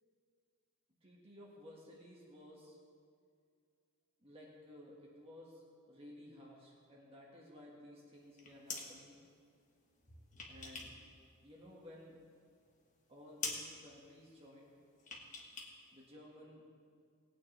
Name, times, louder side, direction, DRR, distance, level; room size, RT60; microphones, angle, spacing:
voice 1, 1.0-2.8 4.2-9.2 10.5-11.0 11.4-12.2 13.1-14.8 15.9-16.8, left 1 dB, 30° right, -4 dB, 1.8 m, -56 dB
sound 1, 8.2-8.9 10.0-11.0 11.3-12.2 12.6-12.7 13.0-13.1 13.4-13.7 15.0-15.7 16.0-16.1, left 4 dB, 35° left, 1.6 m, -45 dB
19.5 x 9.0 x 3.4 m, 2.2 s
head